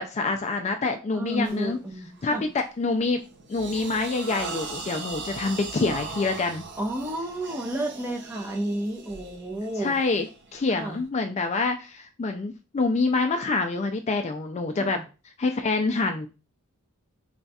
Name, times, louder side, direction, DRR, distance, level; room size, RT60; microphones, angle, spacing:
voice 1, 0.0-1.8 2.2-3.2 3.5-6.6 9.8-15.0 15.4-16.3, left 3 dB, 30° left, 6 dB, 0.3 m, -26 dB
voice 2, 1.1-2.4 6.8-9.9 10.8-11.0 14.7-15.1, right 1 dB, 10° right, 1 dB, 0.6 m, -31 dB
sound 1, 1.4-1.7 2.2-2.5 2.9-11.0, right 4 dB, 55° right, 0.7 m, -39 dB
3.3 x 2.3 x 4.0 m, 0.31 s
head